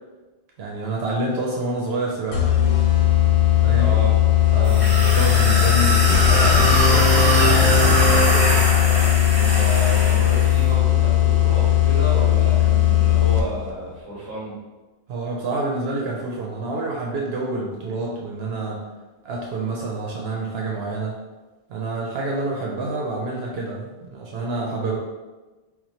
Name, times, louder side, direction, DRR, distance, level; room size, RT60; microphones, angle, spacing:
voice 1, 0.6-2.5 3.6-3.9 4.5-8.6 15.1-18.9 19.2-21.2 21.7-25.0, right 2 dB, 80° right, -2 dB, 0.8 m, -28 dB
sound 1, 2.3-13.7, left 14 dB, 80° left, 0.8 m, -18 dB
voice 2, 3.8-4.2 4.5-4.8 9.3-14.6, right 1 dB, 25° right, -8 dB, 1.6 m, -31 dB
sound 2, 4.6-10.6, right 1 dB, 15° left, 1.4 m, -23 dB
Brass instrument, 6.1-9.2, equal, 50° right, 1.1 m, -23 dB
2.9 x 2.3 x 4.1 m, 1.2 s
omnidirectional pair, 1.0 m